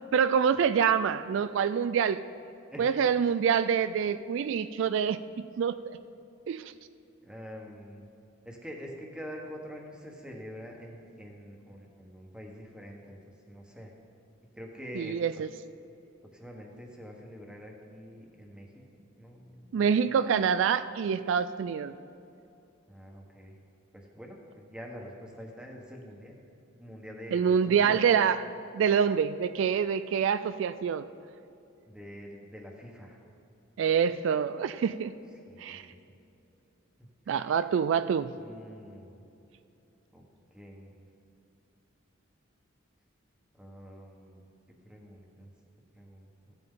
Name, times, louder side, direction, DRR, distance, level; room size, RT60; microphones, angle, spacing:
voice 1, 0.1-2.2 2.8-6.0 6.5-6.7 15.0-15.5 19.7-21.9 27.3-28.4 28.7-31.1 33.8-35.1 35.6-35.8 37.3-38.3, right 7 dB, 65° right, 13 dB, 0.3 m, -26 dB
voice 2, 2.7-3.0 7.2-8.0 8.4-13.2 13.5-13.9 14.5-15.2 16.3-20.2 22.9-23.6 23.9-26.4 26.8-28.0 31.8-33.2 35.5-36.0 37.0-37.7 38.4-39.1 40.1-40.2 40.5-40.9 43.5-44.4 44.8-45.5 45.9-46.6, equal, 5° right, 0 dB, 1.3 m, -46 dB
15.0 x 8.9 x 3.8 m, 2.8 s
head